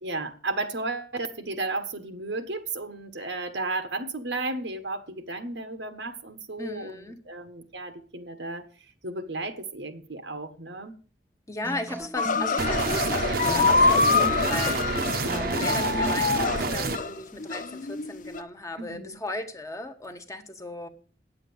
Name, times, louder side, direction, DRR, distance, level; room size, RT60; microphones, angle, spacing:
voice 1, 0.0-11.0 18.8-19.2, right 2 dB, 90° right, 1.4 m, -34 dB
voice 2, 6.6-7.2 11.5-20.9, left 1 dB, 20° left, 1.3 m, -36 dB
sound 1, 11.6-17.0, right 1 dB, 10° right, 0.7 m, -39 dB
sound 2, 12.2-18.4, left 4 dB, 50° left, 0.8 m, -25 dB
sound 3, 12.6-17.0, right 4 dB, 60° right, 1.0 m, -28 dB
9.7 x 7.8 x 7.9 m
head